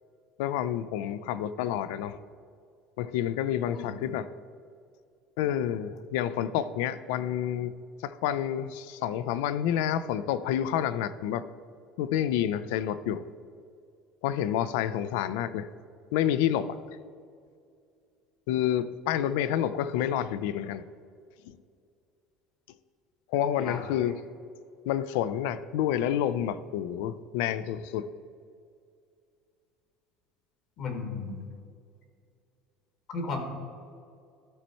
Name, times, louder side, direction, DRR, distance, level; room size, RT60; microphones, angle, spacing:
voice 1, 0.4-2.2 3.0-4.3 5.4-7.7 8.0-11.5 12.0-13.2 14.2-15.7 16.1-16.8 18.5-20.8 21.5-21.6 23.3-24.2 24.8-28.1, left 10 dB, 80° left, 14 dB, 0.3 m, -29 dB
voice 2, 30.8-31.4 33.1-33.4, left 4 dB, 45° left, 4 dB, 1.2 m, -34 dB
13.0 x 4.4 x 4.2 m, 2.3 s
cardioid pair, 170°, 0 cm